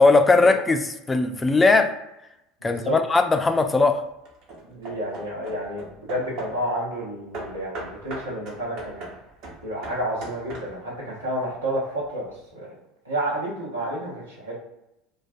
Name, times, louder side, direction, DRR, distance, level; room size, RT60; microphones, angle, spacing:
voice 1, 0.0-1.9 2.6-4.0, left 3 dB, 15° left, 6 dB, 0.3 m, -19 dB
voice 2, 2.6-3.0 4.6-9.1 9.6-12.3 12.5-12.7 13.0-14.5, right 1 dB, 85° right, -5 dB, 0.8 m, -30 dB
Hammer / Wood, 3.1-3.6 4.2-6.7 7.3-11.0, right 2 dB, 55° right, 0.7 m, -39 dB
2.4 x 2.2 x 2.5 m, 0.88 s
figure-of-eight pair, 70°, 0 cm